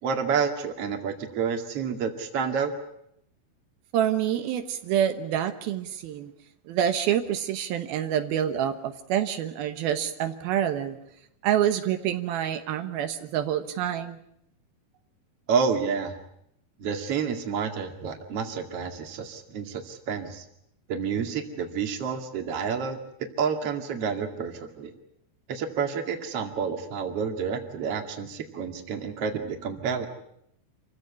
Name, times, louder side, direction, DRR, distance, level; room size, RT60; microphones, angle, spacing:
voice 1, 0.0-2.7 15.5-16.2 16.8-20.4 20.9-23.0 23.4-24.9 25.5-30.1, right 6 dB, 45° right, 5 dB, 2.8 m, -29 dB
voice 2, 3.9-6.3 6.7-11.0 11.4-14.2, right 10 dB, 80° right, 8 dB, 3.1 m, -27 dB
27.5 x 16.0 x 9.7 m, 0.76 s
omnidirectional pair, 4.3 m